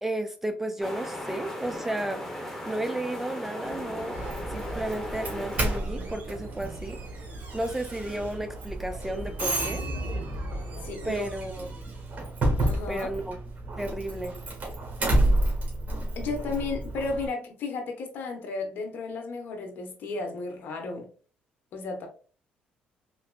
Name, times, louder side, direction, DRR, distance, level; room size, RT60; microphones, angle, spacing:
voice 1, 0.0-2.2 2.7-4.2 4.5-7.0 7.5-9.8 11.0-11.7 12.9-13.4 13.8-14.4, right 1 dB, 10° right, 0.3 m, -33 dB
sound 1, 0.8-5.8, left 1 dB, 5° left, 0.9 m, -37 dB
sound 2, 3.6-11.2, right 3 dB, 70° right, 0.8 m, -44 dB
Doorbell, 4.1-17.3, right 1 dB, 40° right, 1.4 m, -30 dB
voice 2, 10.8-11.3 12.6-13.1 16.2-21.1 21.7-22.1, left 3 dB, 65° left, 0.9 m, -33 dB
3.8 x 2.8 x 2.2 m
cardioid pair, 100°, 4 cm